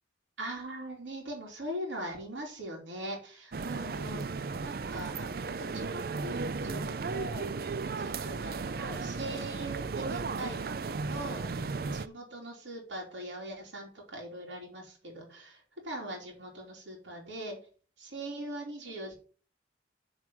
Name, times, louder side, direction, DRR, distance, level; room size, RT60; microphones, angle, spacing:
voice 1, 0.4-4.3 4.6-5.3 5.6-7.5 8.0-11.5 11.8-17.6 18.0-19.1, right 1 dB, 85° right, -1 dB, 3.1 m, -41 dB
sound 1, 3.5-12.1, right 4 dB, 50° right, 0.4 m, -35 dB
9.2 x 4.7 x 5.6 m, 0.39 s
head